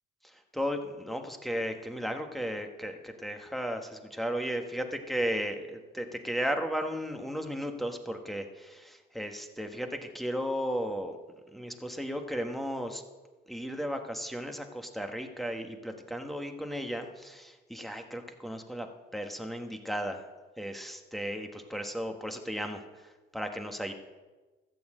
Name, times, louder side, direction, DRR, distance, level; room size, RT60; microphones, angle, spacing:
voice 1, 0.5-11.2 11.5-13.0 13.5-18.9 19.1-20.2 20.6-22.8 23.3-23.9, equal, ahead, 4 dB, 1.4 m, -35 dB
13.5 x 7.1 x 7.8 m, 1.2 s
cardioid pair, 90°, 20 cm